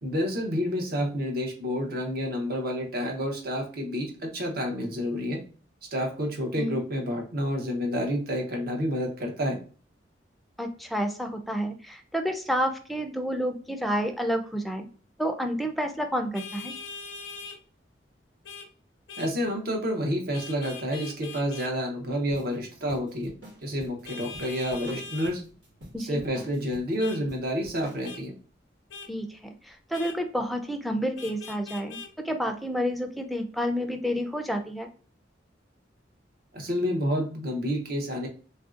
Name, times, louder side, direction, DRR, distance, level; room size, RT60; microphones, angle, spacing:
voice 1, 0.0-5.4 5.9-9.6 19.2-23.3 23.6-25.4 26.0-28.4 36.5-38.3, equal, 55° right, 2 dB, 0.7 m, -29 dB
voice 2, 10.6-14.9 15.2-16.7 25.9-26.2 29.1-32.0 32.2-34.9, equal, ahead, 5 dB, 0.4 m, -29 dB
Vehicle horn car horn honking, 16.3-17.6 18.4-18.7 19.1-19.3 20.3-21.7 24.0-25.3 27.0-27.2 28.0-28.2 28.9-29.1 29.9-30.2 31.2-32.1, left 4 dB, 80° left, 0.5 m, -41 dB
sound 1, 22.3-28.1, right 1 dB, 85° right, 1.5 m, -46 dB
3.1 x 2.6 x 2.4 m, 0.39 s
head